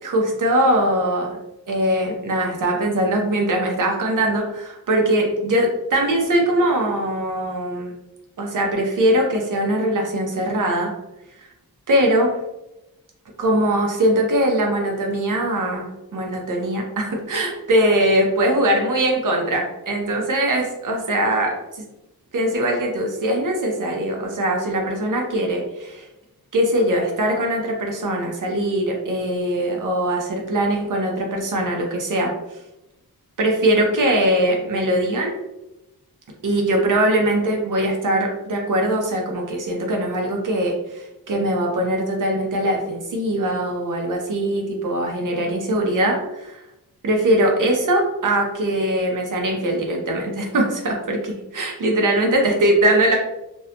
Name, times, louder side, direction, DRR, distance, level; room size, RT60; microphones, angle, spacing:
voice 1, 0.0-1.4 1.7-7.9 8.4-10.9 11.9-12.4 13.4-21.9 22.3-26.1 26.5-32.4 33.4-35.4 36.4-46.6 47.0-53.2, right 1 dB, 55° right, 1 dB, 0.7 m, -21 dB
2.6 x 2.1 x 2.8 m, 0.92 s
wide cardioid pair, 100°, 38 cm